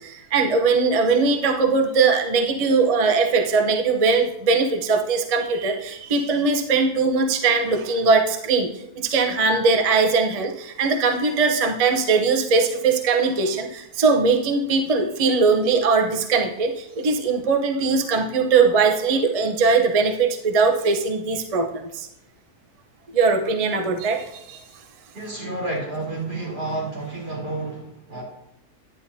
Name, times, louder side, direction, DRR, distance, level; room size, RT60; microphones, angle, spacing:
voice 1, 0.0-8.7 9.0-22.1 23.1-24.6, right 4 dB, 30° right, 3 dB, 0.7 m, -20 dB
voice 2, 25.1-28.2, right 2 dB, 85° right, -5 dB, 4.1 m, -30 dB
10.5 x 9.9 x 2.7 m, 0.79 s
omnidirectional pair, 1.7 m